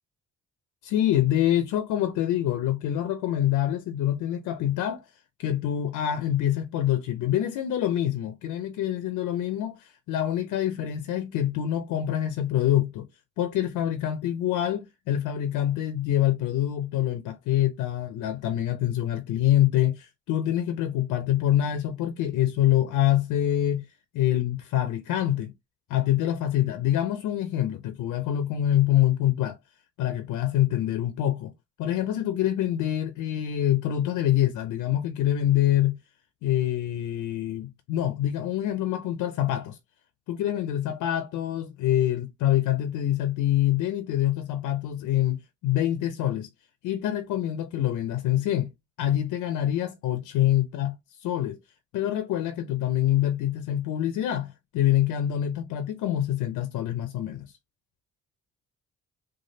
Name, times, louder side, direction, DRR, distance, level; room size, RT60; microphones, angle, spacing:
voice 1, 0.8-5.1 5.4-13.1 13.4-23.9 24.1-25.5 25.9-29.6 30.0-31.5 31.8-36.0 36.4-39.8 40.3-46.5 46.8-48.7 49.0-51.6 51.9-57.5, left 12 dB, 90° left, 0.5 m, -25 dB
3.1 x 2.3 x 2.6 m
cardioid pair, 90°, 30 cm